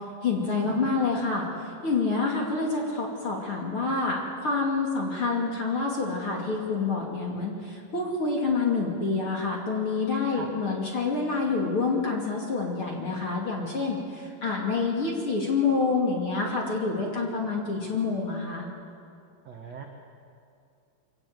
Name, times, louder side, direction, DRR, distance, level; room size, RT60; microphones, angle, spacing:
voice 1, 0.2-18.7, left 4 dB, 35° left, -1 dB, 2.5 m, -27 dB
voice 2, 10.3-10.7 19.4-19.8, right 5 dB, 70° right, 2 dB, 1.5 m, -41 dB
24.5 x 18.0 x 8.0 m, 2.4 s
omnidirectional pair, 5.2 m